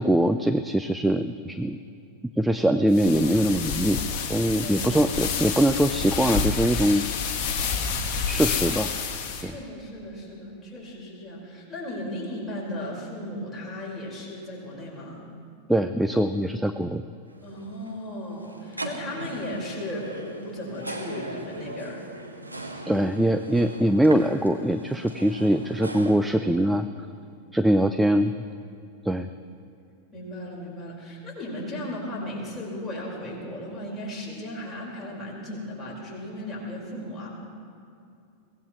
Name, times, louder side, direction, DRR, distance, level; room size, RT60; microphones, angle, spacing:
voice 1, 0.0-1.8 2.4-4.0 4.3-7.1 8.3-8.9 9.4-9.6 15.7-17.0 22.8-26.9 27.5-28.3 29.0-29.3, right 1 dB, 5° right, 9 dB, 0.5 m, -22 dB
sound 1, 2.9-9.4, left 5 dB, 40° left, 1.6 m, -29 dB
voice 2, 4.6-4.9 9.4-15.3 17.4-22.0 30.1-37.3, left 1 dB, 15° left, -4 dB, 5.0 m, -36 dB
sound 2, 17.3-26.1, right 1 dB, 85° right, 1.3 m, -39 dB
23.0 x 17.5 x 3.2 m, 2.6 s
figure-of-eight pair, 90°, 0 cm